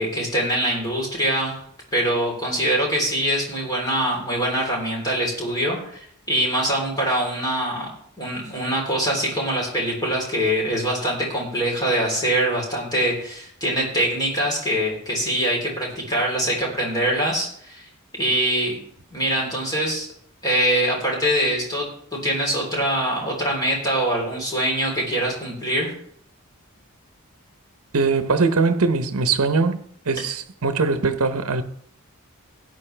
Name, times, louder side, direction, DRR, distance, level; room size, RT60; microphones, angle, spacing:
voice 1, 0.0-1.6 1.9-17.9 18.2-18.8 19.1-20.1 20.4-25.9, right 1 dB, 15° left, 3.6 m, -23 dB
voice 2, 27.9-29.8 30.1-31.6, right 4 dB, 75° right, 0.8 m, -21 dB
16.0 x 9.4 x 3.3 m
head